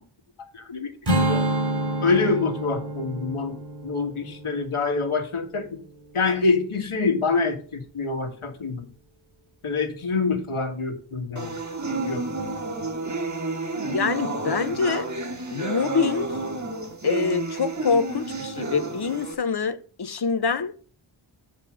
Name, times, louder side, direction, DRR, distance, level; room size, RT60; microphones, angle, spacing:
voice 1, 0.5-1.5 2.0-3.6 3.8-5.7 6.1-8.9 9.6-11.5 12.1-12.2, left 4 dB, 85° left, 1.7 m, -26 dB
Strum, 1.1-6.4, right 1 dB, 55° right, 2.8 m, -29 dB
sound 1, 11.4-19.3, right 3 dB, 35° right, 1.7 m, -30 dB
voice 2, 13.9-15.1 15.5-16.3 17.0-20.7, left 5 dB, 55° left, 1.0 m, -25 dB
7.6 x 5.3 x 6.2 m
cardioid pair, 45°, 48 cm